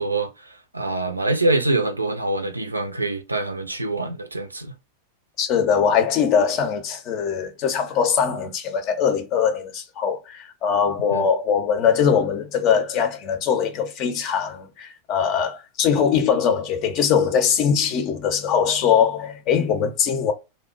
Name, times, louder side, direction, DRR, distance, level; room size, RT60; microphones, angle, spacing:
voice 1, 0.0-4.7 11.1-11.3, right 2 dB, 80° right, 0.4 m, -25 dB
voice 2, 5.4-20.3, left 7 dB, 40° left, 0.6 m, -21 dB
2.7 x 2.1 x 2.3 m
figure-of-eight pair, 90°, 0 cm